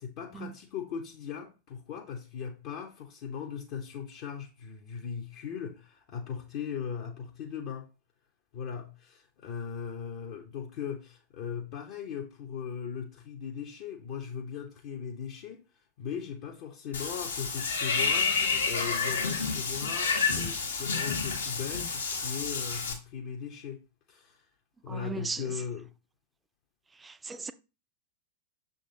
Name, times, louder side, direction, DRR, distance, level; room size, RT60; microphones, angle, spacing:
voice 1, 0.0-7.9 8.5-23.8 24.1-24.5 24.8-25.9, left 7 dB, 45° left, 0.9 m, -39 dB
Water / Bathtub (filling or washing), 16.9-22.9, left 5 dB, 75° left, 1.5 m, -29 dB
voice 2, 24.9-25.4 27.0-27.5, right 4 dB, 15° right, 0.4 m, -37 dB
6.7 x 3.8 x 3.8 m
figure-of-eight pair, 90°, 0 cm